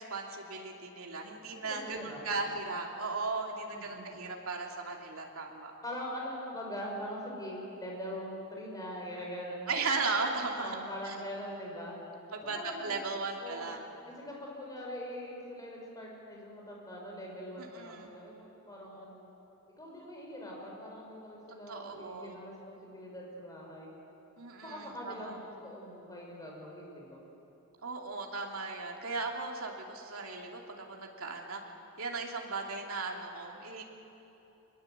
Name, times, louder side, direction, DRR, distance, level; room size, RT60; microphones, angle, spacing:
voice 1, 0.0-5.7 9.7-10.8 11.0-11.2 12.3-13.8 17.6-18.1 21.7-22.4 24.4-25.3 27.8-31.6 32.0-33.8, right 3 dB, 80° right, 1 dB, 2.9 m, -37 dB
voice 2, 1.4-2.5 3.7-4.2 5.8-9.6 10.6-12.0 12.4-13.0 13.4-13.7 14.2-19.3 19.8-23.9 24.6-27.2, equal, 15° left, -2 dB, 5.7 m, -42 dB
24.0 x 21.0 x 8.0 m, 3.0 s
head